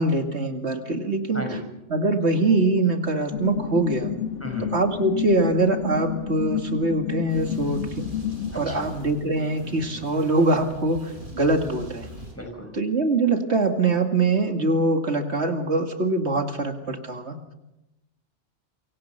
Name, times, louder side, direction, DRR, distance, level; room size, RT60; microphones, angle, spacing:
voice 1, 0.0-1.4 1.9-4.1 4.7-8.1 8.6-11.0 11.3-12.1 12.8-17.4, right 2 dB, 70° right, 5 dB, 2.6 m, -23 dB
voice 2, 1.3-1.7 4.4-4.7 8.5-8.9 12.3-12.7, equal, 10° left, 4 dB, 5.4 m, -34 dB
sound 1, 3.3-8.6, left 10 dB, 85° left, 1.6 m, -30 dB
sound 2, 7.3-12.3, right 1 dB, 45° right, 6.6 m, -41 dB
26.5 x 24.0 x 5.8 m, 0.94 s
omnidirectional pair, 1.2 m